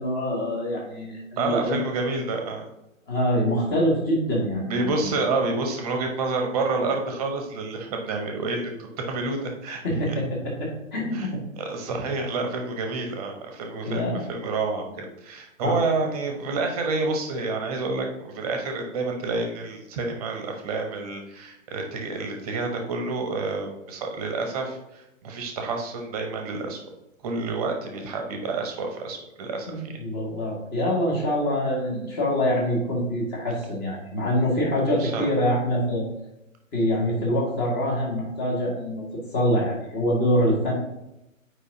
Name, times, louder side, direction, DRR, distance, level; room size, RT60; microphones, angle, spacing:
voice 1, 0.0-1.8 3.1-5.2 9.8-11.4 13.8-14.2 15.6-15.8 29.7-36.1 36.7-39.0 39.3-40.7, equal, 25° left, -3 dB, 1.8 m, -25 dB
voice 2, 1.4-2.7 4.7-9.8 10.1-10.2 11.1-11.3 11.6-26.8 27.2-30.0 35.0-35.3, right 3 dB, 30° right, 3 dB, 1.0 m, -29 dB
8.1 x 4.9 x 2.7 m, 0.89 s
figure-of-eight pair, 125°, 40 cm